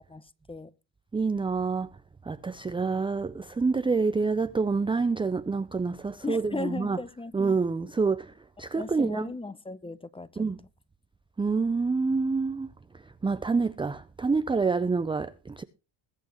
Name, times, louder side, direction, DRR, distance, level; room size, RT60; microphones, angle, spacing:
voice 1, 0.1-0.7 6.2-7.4 8.8-10.4, left 3 dB, 10° left, 0.8 m, -36 dB
voice 2, 1.1-1.9 2.2-7.0 7.3-8.3 8.6-9.3 10.4-10.6 11.4-12.7 13.2-15.6, right 4 dB, 10° right, 0.5 m, -27 dB
21.5 x 8.4 x 3.0 m
cardioid pair, 115°, 46 cm